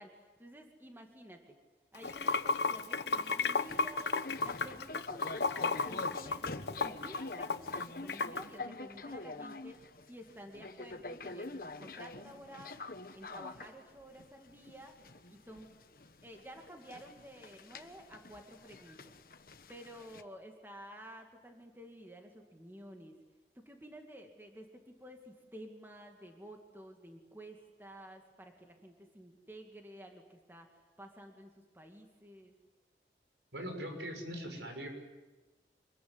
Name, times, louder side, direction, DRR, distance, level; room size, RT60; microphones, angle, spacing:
voice 1, 0.0-1.6 1.9-4.1 4.4-6.5 6.8-12.9 13.1-15.7 16.2-19.1 19.7-23.2 23.5-32.5, equal, 10° right, 3 dB, 2.4 m, -52 dB
Water / Sink (filling or washing), 2.0-8.4, left 4 dB, 75° left, 1.1 m, -33 dB
sound 1, 2.1-20.2, left 3 dB, 50° left, 1.3 m, -47 dB
voice 2, 33.5-34.9, equal, 85° right, 4 dB, 6.4 m, -41 dB
26.5 x 22.0 x 9.7 m, 1.2 s
head